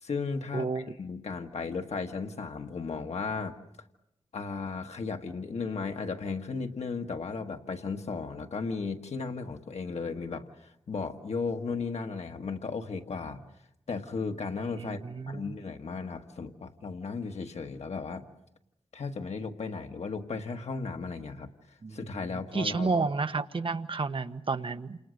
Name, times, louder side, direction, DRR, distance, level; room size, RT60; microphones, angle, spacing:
voice 1, 0.0-3.6 4.3-13.4 13.9-18.3 18.9-21.5 21.9-23.1, left 4 dB, 85° left, 4 dB, 1.5 m, -35 dB
voice 2, 0.5-0.8 14.8-15.6 21.8-22.0 22.5-25.0, right 4 dB, 55° right, 9 dB, 1.2 m, -31 dB
28.5 x 28.0 x 6.5 m, 0.81 s
wide cardioid pair, 90°, 11 cm